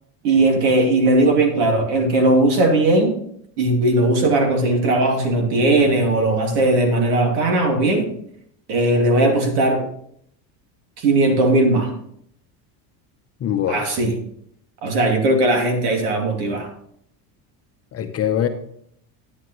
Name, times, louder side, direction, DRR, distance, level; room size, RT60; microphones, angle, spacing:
voice 1, 0.2-3.2 3.6-8.1 8.7-9.8 11.0-11.9 13.7-14.2 14.8-16.7, right 2 dB, 80° right, 3 dB, 2.7 m, -18 dB
voice 2, 13.4-13.8 17.9-18.5, left 10 dB, 30° left, 6 dB, 0.7 m, -22 dB
11.5 x 9.7 x 3.1 m, 0.68 s
supercardioid pair, 130°, 46 cm